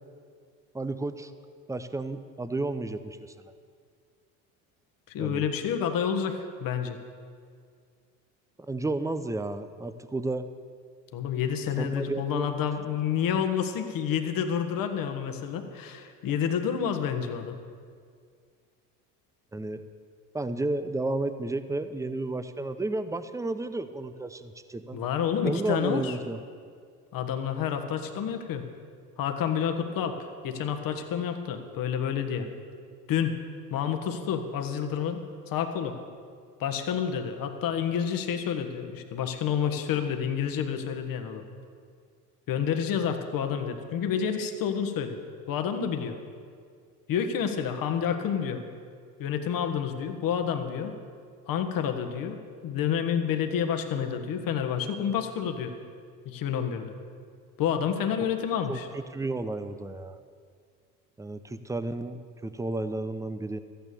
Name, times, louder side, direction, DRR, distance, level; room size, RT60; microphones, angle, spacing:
voice 1, 0.7-1.3 1.7-3.5 5.2-5.5 8.7-10.5 11.8-12.5 19.5-19.9 20.3-25.0 25.4-26.4 58.7-60.2 61.2-63.6, right 2 dB, 5° right, 11 dB, 0.6 m, -32 dB
voice 2, 5.1-7.0 11.1-17.6 24.9-26.1 27.1-28.6 29.2-32.5 33.1-33.3 33.7-35.2 35.5-36.0 36.6-41.4 42.5-45.2 45.5-46.2 47.1-48.6 49.2-50.9 51.5-52.4 52.6-55.7 56.2-56.9 57.6-58.9, left 8 dB, 45° left, 7 dB, 1.4 m, -29 dB
14.0 x 9.2 x 6.9 m, 2.1 s
hypercardioid pair, 70°, 46 cm